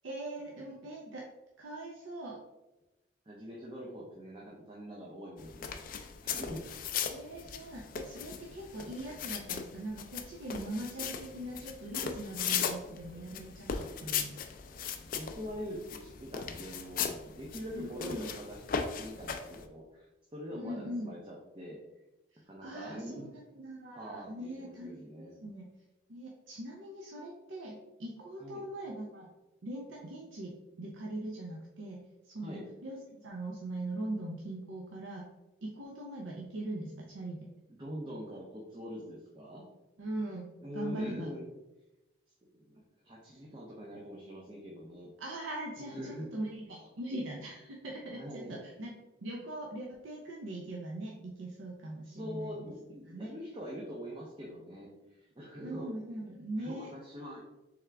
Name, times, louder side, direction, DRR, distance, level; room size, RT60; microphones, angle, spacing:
voice 1, 0.0-1.3 1.6-2.4 7.1-14.4 17.7-18.3 20.5-21.1 22.3-25.7 26.1-29.3 29.6-35.2 35.6-37.5 40.0-41.3 45.2-48.9 49.2-52.6 53.0-53.3 55.6-56.9, right 1 dB, 80° right, -1 dB, 0.5 m, -41 dB
voice 2, 3.3-6.7 13.7-14.1 15.0-21.8 22.5-23.3 24.0-25.4 28.4-28.6 32.4-32.7 37.7-39.6 40.6-41.5 42.5-45.1 45.8-46.3 48.1-48.6 52.1-54.9 55.2-55.9 56.6-57.4, equal, 25° right, -3 dB, 0.5 m, -44 dB
sound 1, 5.4-19.7, left 7 dB, 45° left, 0.3 m, -38 dB
3.5 x 3.5 x 3.3 m, 1.0 s
head